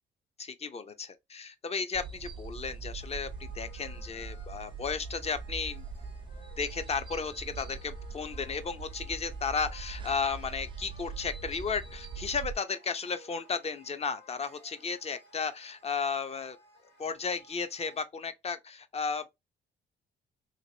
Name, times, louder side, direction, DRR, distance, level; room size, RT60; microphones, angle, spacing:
voice 1, 0.4-5.8 6.6-16.6 17.0-19.3, left 5 dB, 30° left, 0.6 m, -34 dB
sound 1, 1.9-12.5, right 4 dB, 25° right, 0.4 m, -42 dB
sound 2, 3.0-18.0, right 1 dB, 70° left, 1.6 m, -58 dB
2.9 x 2.9 x 2.7 m
cardioid pair, 90°, 20 cm